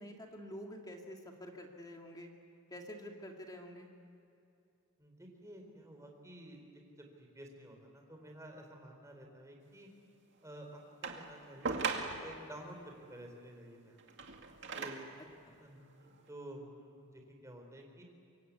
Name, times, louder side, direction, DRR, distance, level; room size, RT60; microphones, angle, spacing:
voice 1, 0.0-2.3 2.7-3.9 15.5-15.6, equal, 15° left, 1 dB, 2.2 m, -48 dB
voice 2, 5.0-9.9 10.4-14.0 14.6-15.1 15.6-18.0, right 1 dB, 15° right, 2 dB, 4.1 m, -51 dB
sound 1, 11.0-12.4 14.0-15.2 16.0-16.1, right 4 dB, 55° right, 2.2 m, -39 dB
26.0 x 23.5 x 8.4 m, 2.6 s
head